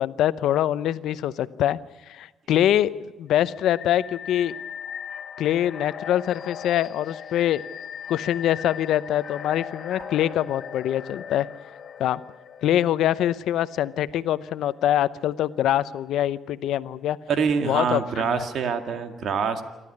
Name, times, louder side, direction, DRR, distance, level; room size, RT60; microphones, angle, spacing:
voice 1, 0.0-1.8 2.1-4.5 5.4-7.6 8.1-11.5 12.0-12.2 12.6-17.2 17.7-18.4, left 11 dB, 80° left, 15 dB, 0.8 m, -24 dB
sound 1, 3.4-14.2, left 8 dB, 60° left, 2.4 m, -39 dB
voice 2, 17.3-19.6, right 6 dB, 65° right, 8 dB, 2.1 m, -25 dB
28.5 x 12.5 x 9.8 m, 1.1 s
cardioid pair, 90°, 0 cm